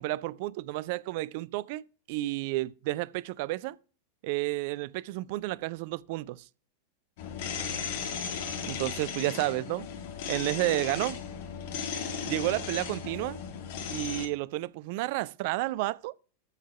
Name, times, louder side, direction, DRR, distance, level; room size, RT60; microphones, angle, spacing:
voice 1, 0.0-3.8 4.2-6.4 8.6-9.9 10.3-11.2 12.3-13.4 13.9-16.1, right 18 dB, 50° right, 0.4 m, -31 dB
sound 1, 7.2-14.3, left 7 dB, 50° left, 1.8 m, -36 dB
13.5 x 4.6 x 5.6 m
figure-of-eight pair, 90°, 0 cm